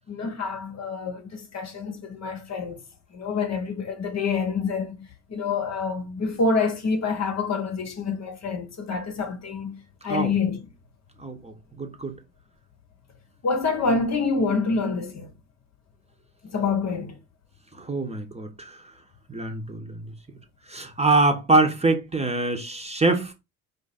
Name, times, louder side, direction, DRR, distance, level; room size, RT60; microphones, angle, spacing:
voice 1, 0.1-2.8 3.1-9.8 10.0-10.7 13.4-15.3 16.4-17.2, left 4 dB, 35° left, 1.1 m, -27 dB
voice 2, 11.2-12.1 17.9-18.7 19.3-19.9 20.7-23.3, right 2 dB, 15° right, 1.2 m, -24 dB
4.9 x 2.6 x 4.2 m
hypercardioid pair, 60°, 45 cm